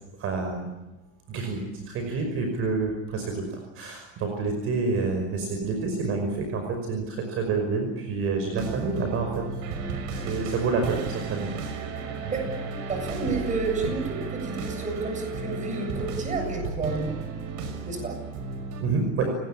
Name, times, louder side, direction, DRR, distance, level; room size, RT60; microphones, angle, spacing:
voice 1, 0.2-0.7 1.3-9.5 10.1-11.5 12.2-12.3 18.8-19.4, right 4 dB, 45° right, 4 dB, 5.5 m, -28 dB
sound 1, 8.5-18.8, right 4 dB, 70° right, 6.0 m, -34 dB
voice 2, 12.9-17.2 17.8-18.2, right 3 dB, 25° right, 4 dB, 7.7 m, -30 dB
29.5 x 19.5 x 8.8 m, 1.0 s
cardioid pair, 155°, 32 cm